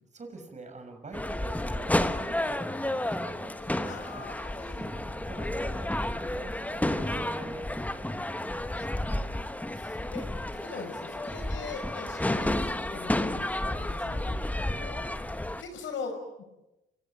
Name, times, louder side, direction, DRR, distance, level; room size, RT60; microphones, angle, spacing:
voice 1, 0.1-4.3 4.9-9.4 14.0-14.2 15.0-15.3, right 2 dB, 35° right, 6 dB, 6.4 m, -45 dB
sound 1, 1.1-15.6, left 1 dB, 5° left, 1.2 m, -31 dB
voice 2, 3.9-4.9 9.3-10.2 10.5-15.0 15.6-16.4, left 4 dB, 75° left, 3 dB, 6.3 m, -41 dB
27.5 x 17.5 x 9.2 m, 0.96 s
cardioid pair, 90°, 20 cm